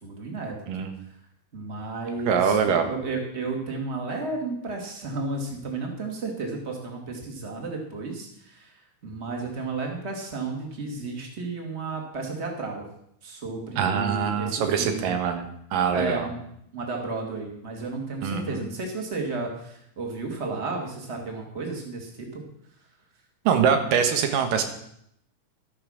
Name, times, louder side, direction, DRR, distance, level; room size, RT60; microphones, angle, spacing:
voice 1, 0.0-0.9 1.5-12.8 13.2-15.1 15.9-16.4 16.7-22.4, right 3 dB, 20° right, 1 dB, 2.4 m, -33 dB
voice 2, 2.3-2.9 13.8-16.3 18.2-18.6 23.5-24.6, right 7 dB, 90° right, 6 dB, 3.0 m, -24 dB
12.5 x 9.8 x 6.6 m, 0.74 s
omnidirectional pair, 3.8 m